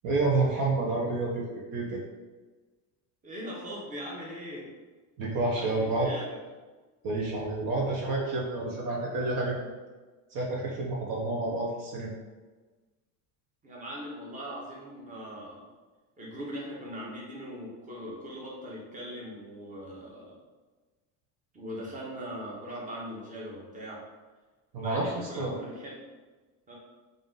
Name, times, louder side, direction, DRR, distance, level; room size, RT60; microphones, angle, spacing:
voice 1, 0.0-1.4 1.7-2.0 5.2-6.1 7.0-9.7 10.3-12.1 24.7-25.5, right 2 dB, 50° right, -3 dB, 0.8 m, -29 dB
voice 2, 3.2-4.7 5.6-6.3 13.6-15.6 16.2-20.4 21.5-24.0 24.8-26.0 26.7-26.8, equal, 20° right, -4 dB, 0.9 m, -40 dB
3.7 x 2.6 x 3.7 m, 1.3 s
cardioid pair, 130°, 42 cm